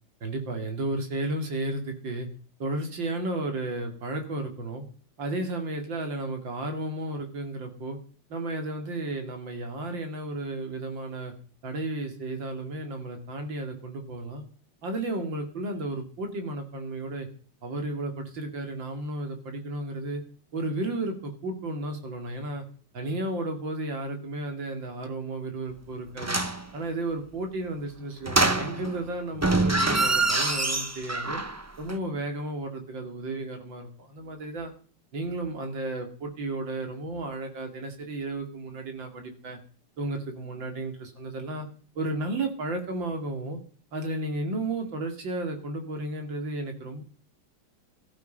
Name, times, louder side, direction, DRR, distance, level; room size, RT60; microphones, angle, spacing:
voice 1, 0.2-2.3 2.6-4.8 5.2-8.0 8.3-11.3 11.6-14.4 14.8-17.3 17.6-20.2 20.5-22.6 22.9-26.4 26.7-31.4 31.8-34.7 35.1-39.6 40.0-41.7 41.9-43.6 43.9-47.0, right 2 dB, 90° right, 5 dB, 3.3 m, -33 dB
sound 1, 26.2-26.6 28.2-29.0 29.4-31.6 31.9-32.0, right 2 dB, 15° right, 0.5 m, -25 dB
14.0 x 13.0 x 5.3 m, 0.42 s
omnidirectional pair, 2.0 m